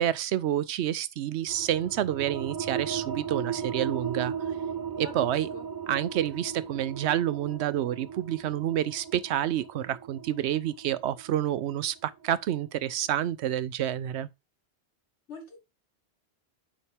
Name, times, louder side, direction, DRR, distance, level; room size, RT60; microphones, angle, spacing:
voice 1, 0.0-4.3 5.0-5.5 5.9-14.3, right 11 dB, 80° right, 0.8 m, -28 dB
sound 1, 1.5-12.7, right 8 dB, 30° right, 0.4 m, -36 dB
voice 2, 5.0-5.6 15.3-15.6, left 3 dB, 90° left, 2.3 m, -44 dB
8.7 x 4.4 x 3.4 m
omnidirectional pair, 1.1 m